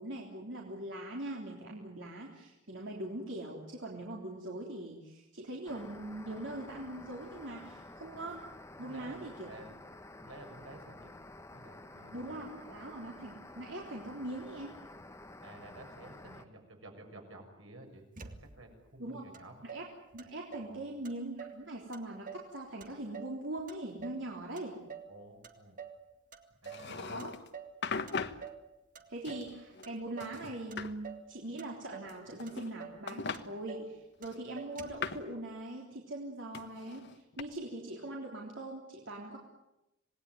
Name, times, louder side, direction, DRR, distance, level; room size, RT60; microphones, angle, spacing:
voice 1, 0.0-8.4 8.8-9.5 12.1-14.8 19.0-19.3 19.6-19.9 20.1-24.8 26.9-27.3 29.1-39.4, right 1 dB, 65° right, -1 dB, 3.6 m, -42 dB
sound 1, 5.7-16.5, left 2 dB, 15° left, 1.4 m, -51 dB
voice 2, 8.8-9.7 10.2-11.1 11.5-12.3 15.4-19.5 20.6-20.9 25.1-25.8 26.6-27.1, right 1 dB, 85° right, 3 dB, 6.7 m, -52 dB
Motor vehicle (road), 18.2-18.8 19.3-19.4 19.7-20.8 21.0-21.6 21.9-22.5 22.8-24.3 24.6-25.2 25.4-26.0 26.3-26.9 27.2-27.8 28.1-28.7 29.0-29.5 29.8-30.4 30.7-31.3 31.6-32.2 32.5-32.6 32.8-33.0 33.3-33.9 34.2-34.3 34.6-35.1, right 6 dB, 45° right, 2.1 m, -47 dB
Wooden Chair - pull up a chair fx (lift scoot placement), 26.6-27.5 27.8-28.4 29.2-29.9 30.2-30.9 32.1-32.8 33.1-33.4 34.3-35.3 36.5-37.4, left 5 dB, 60° left, 1.3 m, -39 dB
27.0 x 19.0 x 9.4 m, 0.93 s
head